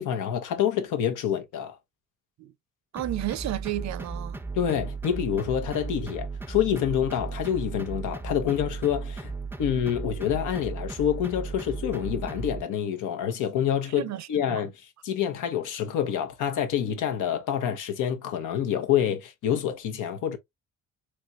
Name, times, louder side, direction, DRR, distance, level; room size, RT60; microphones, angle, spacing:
voice 1, 0.0-1.8 4.5-9.3 9.6-14.7 15.0-20.4, left 9 dB, 85° left, 0.9 m, -27 dB
voice 2, 2.9-4.4 13.9-14.6, right 14 dB, 65° right, 0.5 m, -32 dB
sound 1, 3.0-12.6, right 4 dB, 5° right, 0.4 m, -35 dB
3.4 x 3.1 x 2.5 m
cardioid pair, 90°, 30 cm